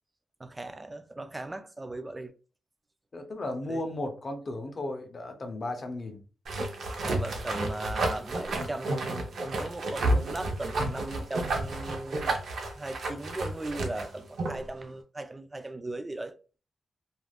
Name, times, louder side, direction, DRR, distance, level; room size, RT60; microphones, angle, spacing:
voice 1, 0.4-2.3 3.7-3.8 7.0-12.3 12.8-16.4, right 2 dB, 20° right, 0.3 m, -38 dB
voice 2, 3.1-6.2, left 2 dB, 35° left, 0.6 m, -35 dB
sound 1, 6.5-14.7, right 2 dB, 65° right, 0.6 m, -31 dB
2.4 x 2.1 x 3.3 m
wide cardioid pair, 135°, 0 cm